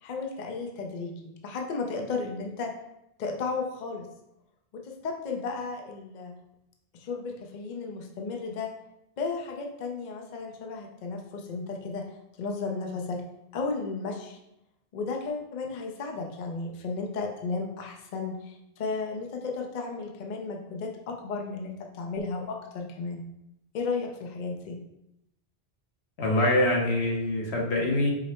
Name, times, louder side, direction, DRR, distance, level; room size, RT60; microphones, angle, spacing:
voice 1, 0.0-2.7 3.2-4.1 4.7-6.3 6.9-8.7 9.2-12.1 12.4-13.2 13.5-14.4 14.9-23.2 23.7-24.8, left 4 dB, 55° left, 1 dB, 0.6 m, -34 dB
voice 2, 26.2-28.1, left 1 dB, 80° left, -1 dB, 1.2 m, -24 dB
4.9 x 2.0 x 4.2 m, 0.85 s
omnidirectional pair, 1.1 m